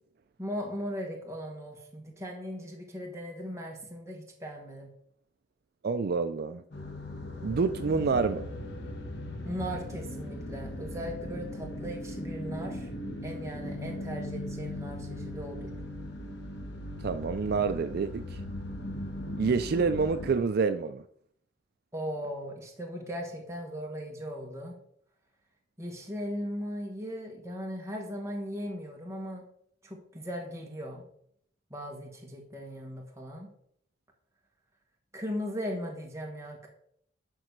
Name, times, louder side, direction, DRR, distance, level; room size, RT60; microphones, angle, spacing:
voice 1, 0.4-4.9 9.4-12.9 13.2-15.7 21.9-24.8 25.8-29.4 29.8-31.1 31.7-33.5 35.1-36.7, equal, 15° right, 1.6 m, -38 dB
voice 2, 5.8-6.6 7.4-8.5 17.0-18.4 19.4-21.0, right 5 dB, 55° right, 0.4 m, -27 dB
sound 1, 6.7-20.3, left 1 dB, 65° left, 1.6 m, -38 dB
12.0 x 4.0 x 6.5 m
head